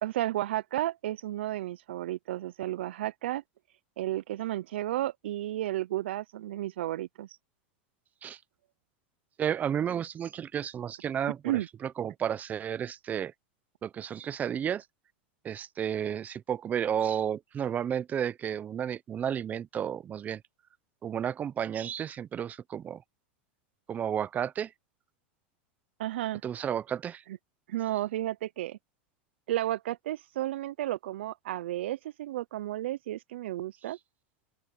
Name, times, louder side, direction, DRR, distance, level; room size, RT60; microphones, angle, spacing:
voice 1, 0.0-3.4 4.0-7.4 11.4-11.7 26.0-26.4 27.3-27.4 27.7-28.8 29.5-34.0, right 14 dB, 80° right, 0.4 m, -32 dB
voice 2, 9.4-11.4 11.8-13.3 13.8-14.8 15.4-20.4 21.0-23.0 23.9-24.7 26.4-27.2, right 9 dB, 25° right, 0.8 m, -32 dB
open air
supercardioid pair, 120°, 6 cm